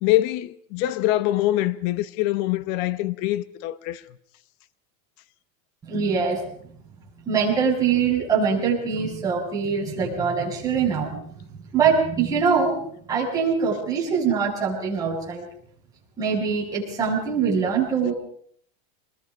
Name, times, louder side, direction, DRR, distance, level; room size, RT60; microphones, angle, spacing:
voice 1, 0.0-4.0, left 15 dB, 50° left, 1.1 m, -24 dB
voice 2, 5.8-6.4 7.3-11.2 11.7-12.8 13.1-15.4 16.2-18.1, right 6 dB, 15° right, 7.2 m, -23 dB
27.0 x 21.5 x 5.4 m
supercardioid pair, 160°, 20 cm